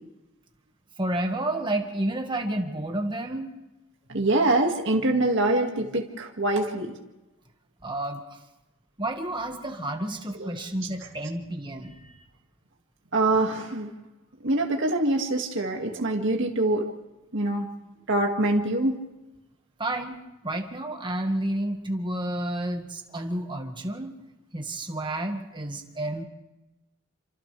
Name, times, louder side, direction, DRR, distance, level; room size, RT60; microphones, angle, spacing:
voice 1, 1.0-3.5 7.8-8.2 9.0-12.1 15.7-15.8 19.8-24.1 24.5-26.2, right 1 dB, 25° right, 4 dB, 1.8 m, -30 dB
voice 2, 4.1-6.9 10.4-10.5 13.1-13.9 14.4-16.9 17.3-17.7 18.1-19.0, right 2 dB, 60° right, 1 dB, 2.2 m, -24 dB
29.0 x 26.0 x 3.4 m, 1.0 s
head